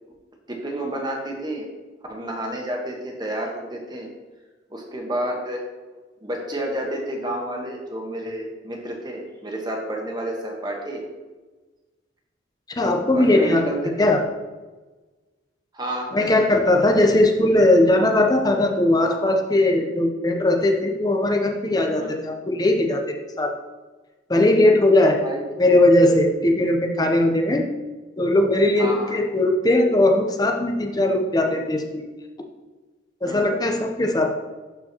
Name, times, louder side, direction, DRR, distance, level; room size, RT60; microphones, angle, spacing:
voice 1, 0.5-1.6 2.1-4.1 4.7-5.6 6.2-11.0 13.1-13.9 15.7-16.5 22.0-22.1 25.2-25.4 28.8-29.1 33.2-33.6, right 1 dB, 20° right, 0 dB, 1.2 m, -30 dB
voice 2, 12.8-13.7 14.0-14.2 16.1-23.0 23.4-23.5 24.3-25.2 25.6-27.7 28.2-32.0 33.2-34.3, left 1 dB, 20° left, 3 dB, 0.7 m, -19 dB
12.0 x 4.5 x 2.9 m, 1.2 s
head